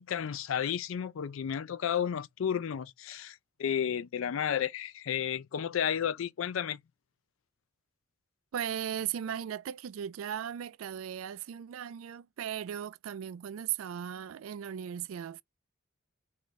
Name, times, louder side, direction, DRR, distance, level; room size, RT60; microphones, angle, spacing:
voice 1, 0.0-6.8, left 8 dB, 75° left, 0.4 m, -32 dB
voice 2, 8.5-15.4, right 9 dB, 85° right, 0.3 m, -37 dB
4.7 x 2.1 x 3.9 m
head